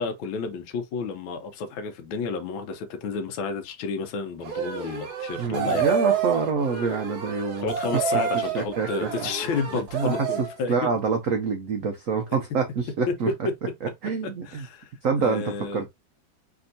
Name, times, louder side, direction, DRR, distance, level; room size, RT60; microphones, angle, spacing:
voice 1, 0.0-6.0 7.6-10.9 13.3-13.5 14.5-14.9 15.2-15.8, left 4 dB, 80° left, 1.4 m, -31 dB
sound 1, 4.4-10.6, right 7 dB, 60° right, 1.3 m, -28 dB
voice 2, 5.3-7.7 8.3-9.3 9.9-13.3 13.8-14.7 15.0-15.9, right 5 dB, 80° right, 0.7 m, -27 dB
3.4 x 2.8 x 2.6 m
omnidirectional pair, 2.1 m